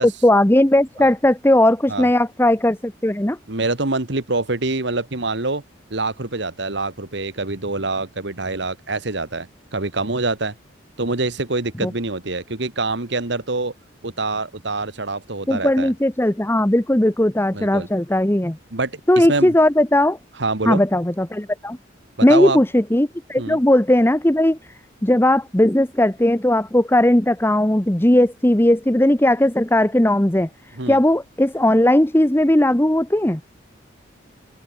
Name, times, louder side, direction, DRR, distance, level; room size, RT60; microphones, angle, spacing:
voice 1, 0.0-3.4 11.8-11.9 15.5-18.6 19.1-20.2 20.7-21.8 22.2-24.6 25.0-30.5 30.9-33.4, left 1 dB, 10° left, 1.0 m, -17 dB
voice 2, 3.5-5.6 5.9-10.5 11.0-13.7 14.0-15.9 17.5-17.9 18.7-19.5 20.4-20.8 22.3-22.6 23.4-23.6 30.8-31.0, right 3 dB, 60° right, 1.8 m, -25 dB
open air
head